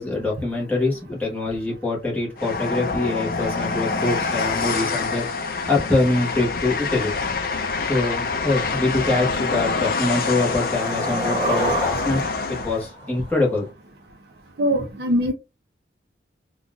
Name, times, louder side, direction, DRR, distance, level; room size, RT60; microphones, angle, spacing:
voice 1, 0.0-7.1 7.9-12.2 12.5-13.7, left 2 dB, 10° left, 1.0 m, -24 dB
Train, 2.4-12.9, left 4 dB, 50° left, 0.5 m, -26 dB
Skateboard, 7.9-8.0 8.4-8.7 9.0-13.7, equal, 25° right, 1.2 m, -30 dB
voice 2, 14.6-15.3, equal, 65° right, 0.6 m, -21 dB
3.8 x 2.3 x 2.3 m
head